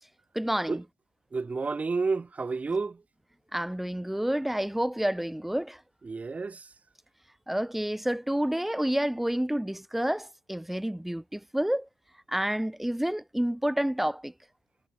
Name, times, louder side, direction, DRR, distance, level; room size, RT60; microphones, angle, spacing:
voice 1, 0.4-0.8 3.5-5.8 7.5-11.9 12.3-14.3, right 1 dB, 5° right, 3.9 m, -29 dB
voice 2, 1.3-3.0 6.0-6.6, right 4 dB, 25° right, 4.2 m, -30 dB
cardioid pair, 120°, 6 cm